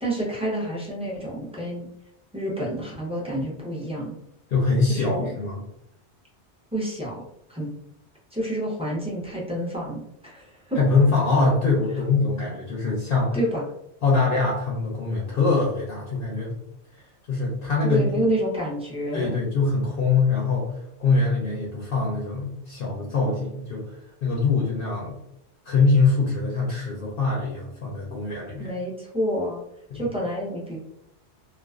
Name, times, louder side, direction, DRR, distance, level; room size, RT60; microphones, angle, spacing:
voice 1, 0.0-1.9 2.3-4.2 4.9-5.4 6.7-7.2 7.5-7.7 8.3-10.8 13.3-13.6 17.8-19.4 28.6-29.6 29.9-30.8, right 1 dB, 10° right, -6 dB, 0.4 m, -28 dB
voice 2, 4.5-5.6 10.8-13.4 14.0-16.6 17.3-18.0 19.1-23.8 24.2-25.2 25.6-28.7 29.9-30.0, left 3 dB, 65° left, -3 dB, 0.7 m, -23 dB
2.4 x 2.3 x 2.3 m, 0.78 s
omnidirectional pair, 1.2 m